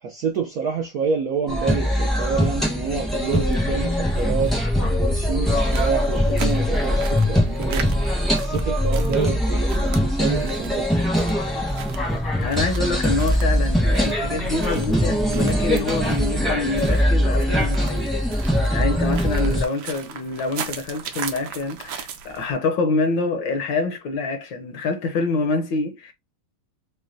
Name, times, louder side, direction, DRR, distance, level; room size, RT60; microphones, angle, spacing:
voice 1, 0.0-4.6 5.0-7.9 8.3-11.4, right 6 dB, 85° right, 0.8 m, -28 dB
sound 1, 1.5-19.6, equal, ahead, 0.5 m, -22 dB
Sandal Gravel Walk, 3.2-22.5, right 7 dB, 65° right, 1.1 m, -39 dB
voice 2, 12.4-18.2 18.7-26.1, left 3 dB, 65° left, 1.3 m, -26 dB
6.2 x 2.2 x 2.6 m
omnidirectional pair, 2.4 m